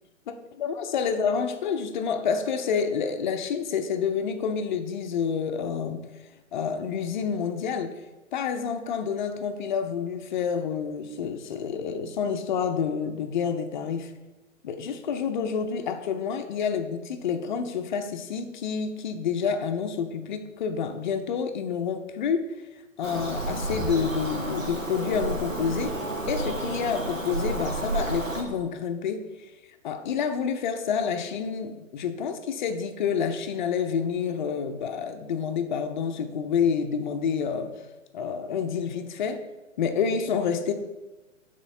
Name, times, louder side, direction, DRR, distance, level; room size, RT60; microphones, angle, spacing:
voice 1, 0.6-6.1 6.5-8.0 8.3-14.1 14.6-22.5 23.0-26.0 26.3-29.5 29.8-37.7 38.1-39.5 39.8-40.7, left 6 dB, 40° left, 7 dB, 0.6 m, -28 dB
Bird vocalization bird call bird song, 23.0-28.4, right 2 dB, 85° right, 1.2 m, -31 dB
7.9 x 3.1 x 5.6 m, 1.1 s
figure-of-eight pair, 115°, 38 cm